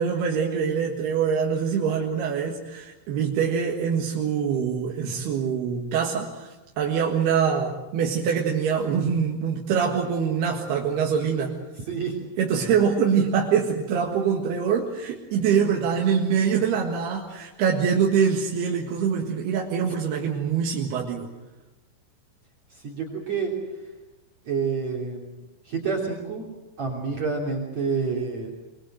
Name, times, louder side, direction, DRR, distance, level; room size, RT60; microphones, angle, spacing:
voice 1, 0.0-11.6 12.4-21.3, right 7 dB, 65° right, -1 dB, 3.6 m, -24 dB
voice 2, 22.7-23.5 24.5-25.3 25.7-26.4 26.8-28.5, right 5 dB, 40° right, -1 dB, 4.0 m, -28 dB
24.5 x 23.0 x 7.7 m, 1.0 s
omnidirectional pair, 5.2 m